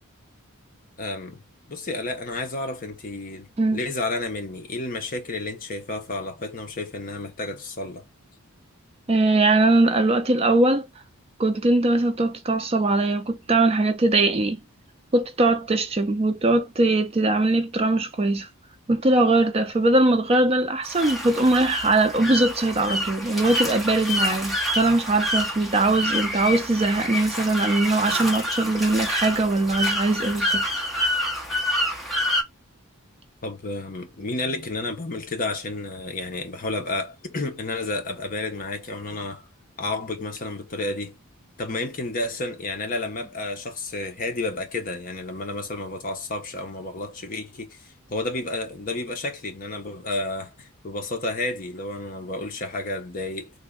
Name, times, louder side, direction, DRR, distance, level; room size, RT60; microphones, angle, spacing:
voice 1, 1.0-1.4 1.7-8.0 33.4-39.4 39.8-41.2 41.6-53.5, left 2 dB, 40° left, 0.7 m, -31 dB
voice 2, 9.1-10.9 11.4-14.6 15.1-18.5 18.9-30.6, right 2 dB, 25° right, 0.4 m, -21 dB
sound 1, 20.8-32.4, left 1 dB, ahead, 0.8 m, -28 dB
3.4 x 2.2 x 3.5 m
head